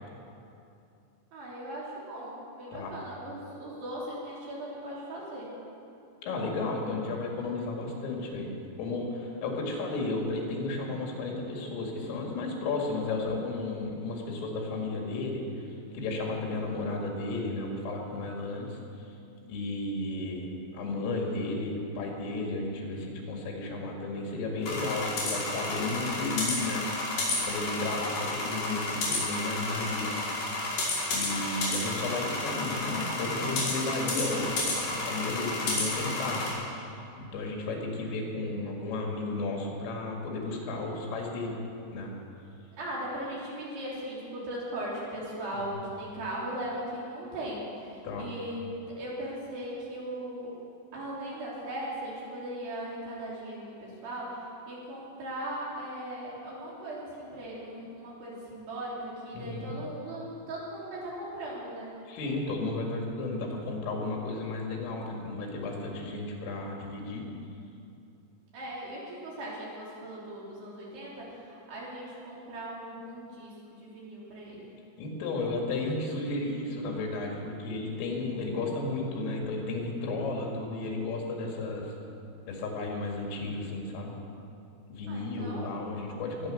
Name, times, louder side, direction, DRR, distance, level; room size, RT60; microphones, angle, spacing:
voice 1, 1.3-5.5 42.8-48.6 49.0-50.5 50.9-61.9 68.5-74.7 85.1-85.8, right 1 dB, 55° right, -5 dB, 5.0 m, -38 dB
voice 2, 6.2-8.5 8.8-15.7 15.9-18.8 19.5-27.1 27.5-30.1 31.1-36.5 37.2-41.6 41.9-42.1 45.7-45.8 48.0-48.3 59.3-59.7 62.1-67.3 75.0-81.9 82.5-84.2 84.9-86.5, left 2 dB, 75° left, 0 dB, 4.8 m, -33 dB
sound 1, 24.6-36.5, left 2 dB, 45° left, 6.9 m, -32 dB
21.5 x 10.0 x 6.5 m, 2.6 s
omnidirectional pair, 5.9 m